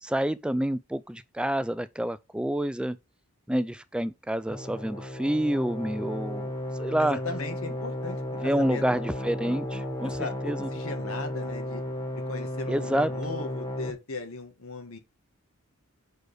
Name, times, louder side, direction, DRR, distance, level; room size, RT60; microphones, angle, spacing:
voice 1, 0.0-3.0 3.5-6.5 6.8-7.2 8.4-10.7 12.7-13.1, right 1 dB, 5° right, 0.3 m, -28 dB
sound 1, 4.5-13.9, left 1 dB, 15° left, 1.8 m, -34 dB
voice 2, 7.0-8.8 10.0-11.8 12.3-15.0, left 3 dB, 75° left, 2.0 m, -37 dB
6.2 x 4.9 x 4.6 m
head